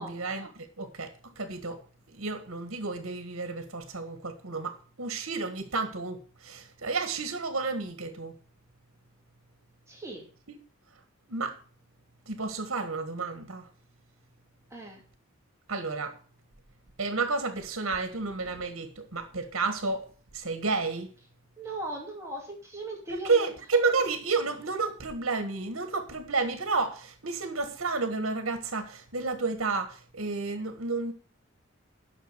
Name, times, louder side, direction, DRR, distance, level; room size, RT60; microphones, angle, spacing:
voice 1, 0.0-1.8 2.1-8.3 11.3-11.6 12.3-13.7 15.7-16.2 17.0-20.1 20.3-21.1 23.1-31.1, right 4 dB, 70° right, 1.6 m, -31 dB
voice 2, 9.9-10.3 14.7-15.0 21.6-23.5, right 1 dB, 15° right, 2.6 m, -38 dB
10.0 x 6.3 x 6.7 m
head